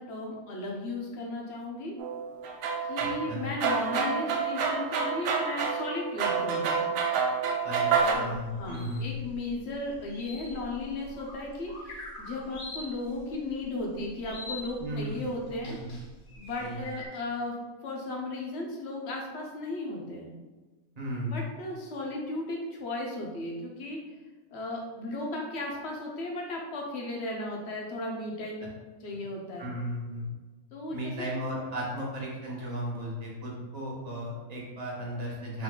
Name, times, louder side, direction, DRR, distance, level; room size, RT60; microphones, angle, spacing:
voice 1, 0.0-1.9 2.8-6.9 8.0-8.3 8.6-15.8 16.4-17.5 17.8-20.3 21.3-24.0 24.5-28.6 29.0-29.7 30.7-31.3, left 2 dB, 55° left, -1 dB, 1.0 m, -35 dB
sound 1, 2.0-8.1, right 5 dB, 75° right, 1.0 m, -28 dB
voice 2, 3.0-3.4 7.6-7.8 8.1-9.2 14.8-15.1 15.6-15.9 16.6-16.8 21.0-21.4 29.1-29.2 29.6-30.3 30.9-35.6, equal, 30° right, -4 dB, 1.0 m, -35 dB
sound 2, 8.0-17.1, left 2 dB, 85° left, 1.4 m, -44 dB
3.8 x 2.7 x 3.7 m, 1.3 s
omnidirectional pair, 1.4 m